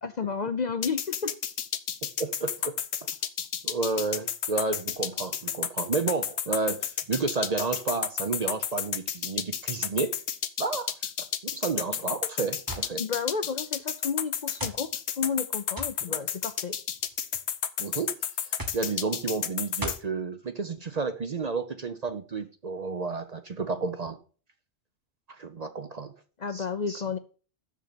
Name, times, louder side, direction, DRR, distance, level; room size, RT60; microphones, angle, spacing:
voice 1, 0.0-1.3 13.0-14.9 15.2-16.8 26.4-27.2, left 5 dB, 50° left, 0.6 m, -31 dB
sound 1, 0.8-20.0, left 9 dB, 75° left, 1.0 m, -31 dB
voice 2, 2.0-2.8 3.6-10.2 10.6-10.9 11.4-13.0 16.1-16.3 17.8-18.1 18.7-24.2 25.3-26.1 26.5-27.0, right 4 dB, 45° right, 0.7 m, -31 dB
sound 2, 12.7-12.9 13.8-13.9 14.6-14.8 15.8-16.0 17.0-17.4 18.6-18.9 19.8-20.1, right 1 dB, 20° right, 1.1 m, -37 dB
6.6 x 6.5 x 6.6 m
omnidirectional pair, 1.1 m